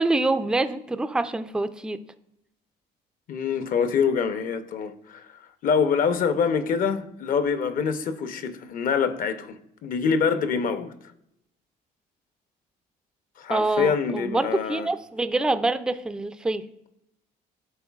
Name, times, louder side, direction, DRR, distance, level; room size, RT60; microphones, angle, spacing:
voice 1, 0.0-2.0 13.5-16.6, right 2 dB, 5° right, 0.3 m, -25 dB
voice 2, 3.3-5.3 5.6-10.9 13.4-14.9, left 6 dB, 55° left, 0.7 m, -25 dB
11.0 x 3.8 x 2.3 m
cardioid pair, 110°, 17 cm